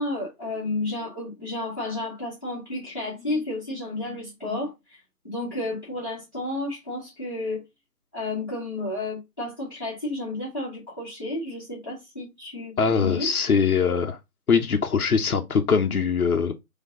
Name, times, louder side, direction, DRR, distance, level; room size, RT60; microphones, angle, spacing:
voice 1, 0.0-5.0 5.2-7.6 8.1-13.3, left 2 dB, 15° left, 1.1 m, -31 dB
voice 2, 12.8-14.2 14.5-16.5, left 6 dB, 65° left, 0.9 m, -22 dB
4.2 x 2.9 x 3.6 m
figure-of-eight pair, 175°, 47 cm